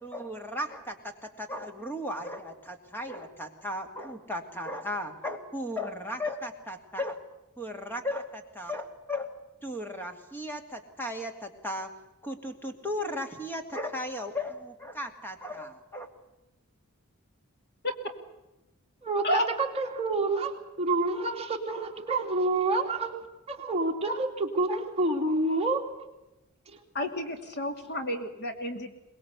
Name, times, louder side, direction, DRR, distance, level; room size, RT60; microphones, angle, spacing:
voice 1, 0.0-7.2 7.6-9.3 9.6-11.9 12.2-16.1, left 1 dB, 10° left, 5 dB, 2.5 m, -36 dB
voice 2, 19.0-25.9, right 2 dB, 25° right, 1 dB, 2.7 m, -28 dB
voice 3, 26.9-28.9, left 1 dB, 50° left, 5 dB, 2.7 m, -30 dB
23.0 x 20.5 x 8.2 m, 0.97 s
head